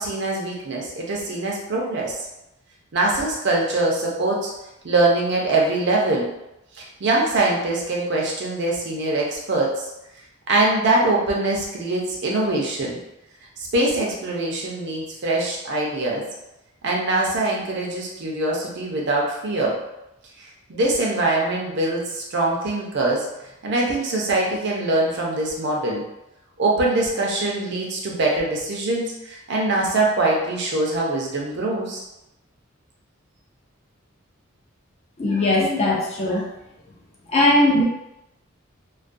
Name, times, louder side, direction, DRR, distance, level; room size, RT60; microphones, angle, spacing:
voice 1, 0.0-2.2 2.9-4.5 4.8-6.3 6.8-9.7 10.5-13.0 13.7-16.2 16.8-19.8 20.7-23.3 23.6-26.0 26.6-32.0, right 2 dB, 55° right, -2 dB, 0.6 m, -23 dB
voice 2, 35.2-36.5 37.3-37.8, left 1 dB, 30° left, -3 dB, 0.5 m, -19 dB
2.3 x 2.2 x 2.5 m, 0.90 s
head